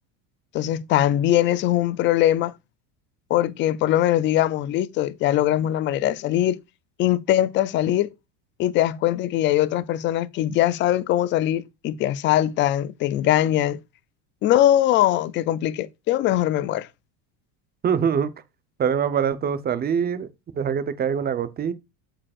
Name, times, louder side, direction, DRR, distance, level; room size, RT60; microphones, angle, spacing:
voice 1, 0.5-2.5 3.3-6.6 7.0-8.1 8.6-13.8 14.4-16.9, left 13 dB, 30° left, 0.3 m, -21 dB
voice 2, 17.8-18.3 18.8-20.3 20.5-21.7, right 7 dB, 20° right, 0.8 m, -23 dB
8.7 x 7.5 x 2.4 m
cardioid pair, 155°, 46 cm